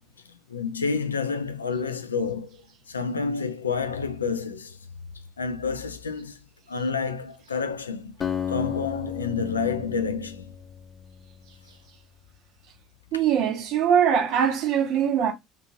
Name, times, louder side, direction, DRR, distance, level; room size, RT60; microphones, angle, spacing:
voice 1, 0.5-2.6 2.9-4.8 5.4-6.4 6.7-8.2 8.5-10.5, left 5 dB, 90° left, 0.3 m, -29 dB
Acoustic guitar, 8.2-11.8, left 8 dB, 35° left, 0.7 m, -34 dB
voice 2, 13.1-15.3, right 8 dB, 60° right, 0.8 m, -22 dB
2.8 x 2.5 x 2.6 m
hypercardioid pair, 65°, 0 cm